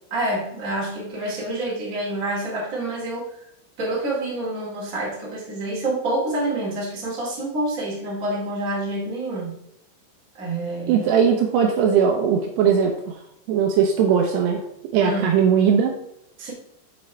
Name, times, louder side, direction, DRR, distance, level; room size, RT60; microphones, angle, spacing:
voice 1, 0.1-3.3 3.8-9.5 10.4-11.1 15.0-15.4 16.4-16.5, right 1 dB, 55° right, -4 dB, 0.9 m, -27 dB
voice 2, 10.9-13.2 13.5-14.6 14.9-15.9, right 7 dB, 90° right, 2 dB, 2.4 m, -19 dB
7.4 x 7.1 x 3.3 m, 0.76 s
omnidirectional pair, 6.0 m